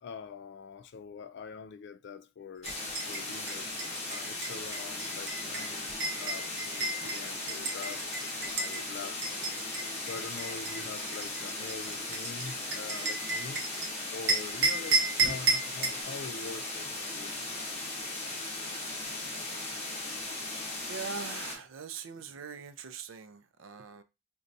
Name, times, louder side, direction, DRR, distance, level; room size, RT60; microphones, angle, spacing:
voice 1, 0.0-2.7 3.1-3.7 4.1-13.6 14.1-17.4, left 5 dB, 60° left, 0.4 m, -45 dB
sound 1, 2.6-21.5, left 2 dB, 35° left, 0.8 m, -37 dB
sound 2, 2.6-8.8 9.2-13.9 14.3-16.0, right 3 dB, 60° right, 0.8 m, -32 dB
voice 2, 20.9-24.0, right 5 dB, 80° right, 0.4 m, -42 dB
4.0 x 2.2 x 2.6 m
head